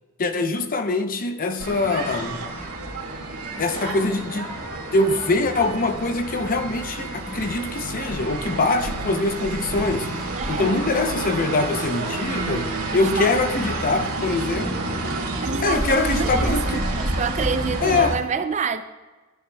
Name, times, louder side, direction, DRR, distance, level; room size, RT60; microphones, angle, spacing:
voice 1, 0.2-2.4 3.6-4.5 4.9-10.1 10.5-14.8 15.6-16.9 17.8-18.2, left 3 dB, 40° left, 7 dB, 0.7 m, -23 dB
sound 1, 1.6-18.2, right 2 dB, 90° right, 2.1 m, -29 dB
voice 2, 10.4-10.8 12.9-13.4 15.4-18.8, right 5 dB, 35° right, 11 dB, 0.4 m, -28 dB
14.5 x 9.4 x 2.3 m, 1.2 s
head